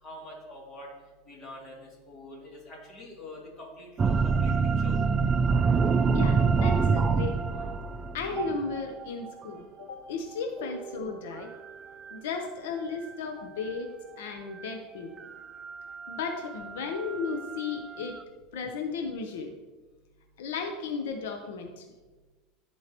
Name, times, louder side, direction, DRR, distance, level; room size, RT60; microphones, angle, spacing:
voice 1, 0.0-0.9 1.3-5.0, left 1 dB, 30° left, -4 dB, 2.6 m, -45 dB
sound 1, 4.0-9.4 10.6-11.7 12.1-12.2 14.6-14.7 15.2-18.2, right 5 dB, 20° right, 0.3 m, -27 dB
voice 2, 6.1-7.7 8.1-11.5 12.1-13.9 14.2-15.1 16.1-18.1 18.5-19.5 20.4-21.8, left 5 dB, 85° left, 3 dB, 0.8 m, -35 dB
13.5 x 4.6 x 3.0 m, 1.3 s
supercardioid pair, 150°, 0 cm